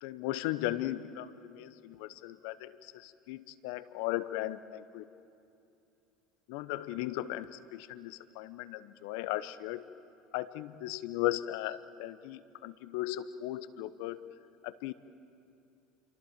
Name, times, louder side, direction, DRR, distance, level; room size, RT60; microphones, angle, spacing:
voice 1, 0.0-5.1 6.5-9.8 10.3-14.3 14.6-14.9, left 15 dB, 70° left, 14 dB, 0.9 m, -37 dB
27.5 x 23.5 x 7.4 m, 2.6 s
hypercardioid pair, 70°, 0 cm